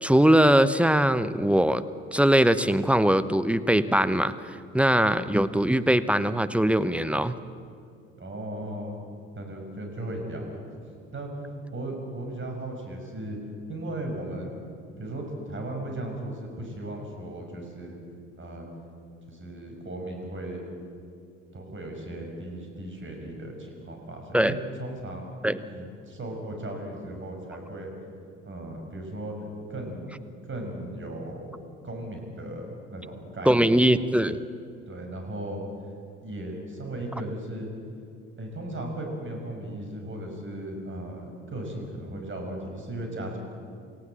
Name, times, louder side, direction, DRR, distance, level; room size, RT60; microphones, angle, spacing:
voice 1, 0.0-1.8 2.1-4.3 4.7-7.3 24.3-24.6 25.4-25.6 33.4-34.4, right 1 dB, 5° right, 13 dB, 0.9 m, -21 dB
voice 2, 8.1-9.1 9.4-10.6 11.1-13.4 13.7-14.6 15.0-18.0 18.4-18.7 19.3-20.6 21.5-27.9 28.5-29.3 29.7-30.2 30.5-31.5 31.8-33.7 34.9-35.6 36.2-37.7 38.4-43.4, right 1 dB, 30° right, 2 dB, 6.0 m, -36 dB
28.5 x 16.5 x 7.7 m, 2.4 s
figure-of-eight pair, 55°, 38 cm